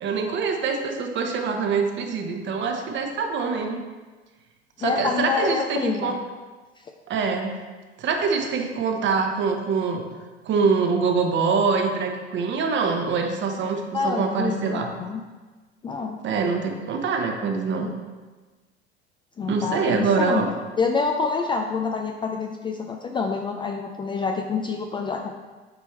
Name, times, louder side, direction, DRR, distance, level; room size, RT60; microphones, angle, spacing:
voice 1, 0.0-3.8 4.8-6.2 7.1-7.6 8.0-10.0 10.4-14.9 16.2-17.9 19.5-20.5, right 5 dB, 35° right, 4 dB, 1.0 m, -24 dB
voice 2, 4.8-6.2 6.8-6.9 13.9-15.2 15.8-16.2 19.4-20.4 20.8-25.3, left 5 dB, 15° left, 3 dB, 0.4 m, -27 dB
8.8 x 4.5 x 3.2 m, 1.3 s
hypercardioid pair, 80°, 32 cm